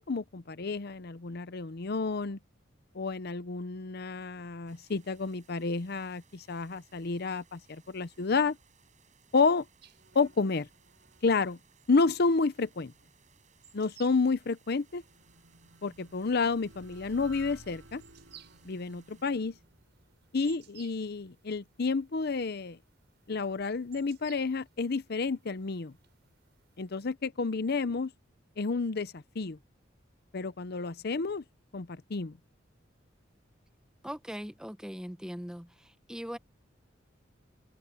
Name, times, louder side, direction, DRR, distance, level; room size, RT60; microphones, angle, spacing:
voice 1, 0.0-2.4 2.9-8.6 9.3-9.7 10.1-10.7 11.2-11.6 11.9-12.9 13.7-15.0 15.8-18.0 18.6-19.5 20.3-22.8 23.3-25.9 26.8-28.1 28.6-29.6 30.3-31.4 31.7-32.4, left 4 dB, 55° left, 0.7 m, -30 dB
sound 1, 4.7-19.3, right 7 dB, 40° right, 7.2 m, -66 dB
sound 2, 9.8-27.1, right 9 dB, 60° right, 7.2 m, -61 dB
sound 3, 14.0-21.0, right 2 dB, 85° right, 5.5 m, -56 dB
voice 2, 34.0-36.4, equal, 5° right, 1.0 m, -40 dB
head